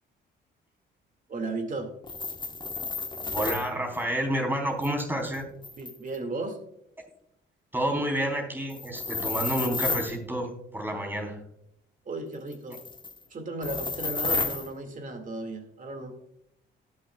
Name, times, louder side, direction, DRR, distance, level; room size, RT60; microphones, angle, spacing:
voice 1, 1.3-1.9 5.8-6.6 12.1-12.8 13.3-16.1, right 2 dB, 40° right, 6 dB, 2.2 m, -35 dB
sound 1, 2.0-3.7 4.8-6.2 8.7-10.2 12.5-13.2 13.6-14.7, left 4 dB, 25° left, 1.2 m, -32 dB
voice 2, 3.3-5.4 7.7-11.4, right 1 dB, 10° right, 1 dB, 3.7 m, -29 dB
18.0 x 7.0 x 2.4 m, 0.78 s
cardioid pair, 90°, 20 cm